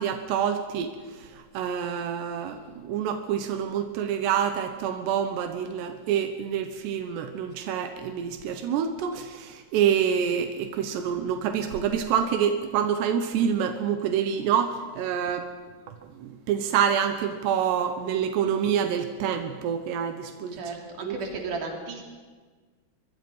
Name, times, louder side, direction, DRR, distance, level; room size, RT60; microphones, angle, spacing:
voice 1, 0.0-15.5 16.2-20.6 21.0-21.2, right 8 dB, 90° right, 7 dB, 3.4 m, -27 dB
voice 2, 20.5-22.0, right 4 dB, 55° right, 1 dB, 4.5 m, -34 dB
24.0 x 23.0 x 5.6 m, 1.4 s
omnidirectional pair, 4.7 m